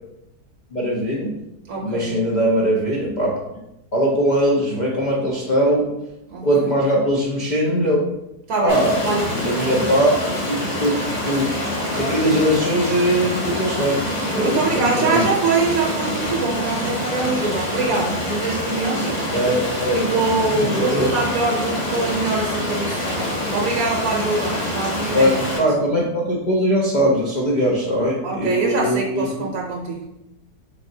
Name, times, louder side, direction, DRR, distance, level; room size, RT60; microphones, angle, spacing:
voice 1, 0.7-1.4 1.8-3.6 3.9-5.9 6.4-8.0 8.6-10.1 10.5-11.6 12.0-14.0 14.3-15.3 19.3-20.0 20.6-21.1 25.1-29.3, equal, 70° left, -4 dB, 0.4 m, -21 dB
voice 2, 1.7-2.2 6.3-6.7 8.5-8.8 9.0-9.3 14.4-19.2 19.9-25.7 28.2-30.0, right 3 dB, 70° right, 0 dB, 1.1 m, -24 dB
Stream, 8.7-25.6, left 1 dB, 35° left, 0.7 m, -26 dB
3.6 x 3.5 x 2.6 m, 0.88 s
omnidirectional pair, 1.7 m